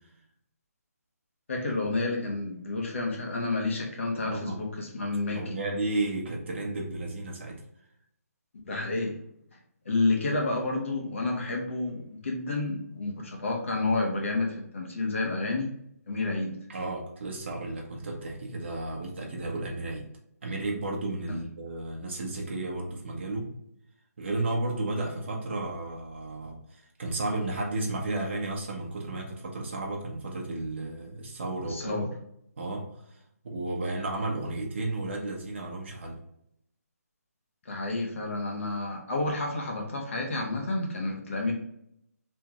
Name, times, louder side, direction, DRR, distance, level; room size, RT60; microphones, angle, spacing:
voice 1, 1.5-5.6 8.6-9.2 9.5-9.6 9.8-15.7 16.1-16.6 21.3-21.4 31.6-32.1 37.6-41.5, left 2 dB, 50° left, 0 dB, 1.2 m, -30 dB
voice 2, 4.2-4.6 5.3-7.6 16.7-20.1 20.4-23.5 24.2-32.1 32.6-32.9 33.4-36.2, right 2 dB, 45° right, 0 dB, 1.1 m, -33 dB
3.5 x 3.4 x 3.0 m, 0.73 s
hypercardioid pair, 170°, 9 cm